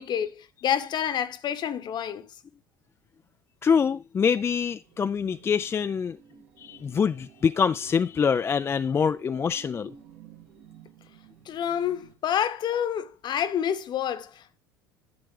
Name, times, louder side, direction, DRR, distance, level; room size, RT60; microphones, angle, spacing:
voice 1, 0.0-2.3 11.5-14.6, left 9 dB, 45° left, 1.0 m, -28 dB
voice 2, 3.6-6.2 6.6-9.9, left 6 dB, 25° left, 0.3 m, -25 dB
sound 1, 4.8-12.1, right 7 dB, 70° right, 2.3 m, -53 dB
10.5 x 7.7 x 3.3 m
hypercardioid pair, 75°, 11 cm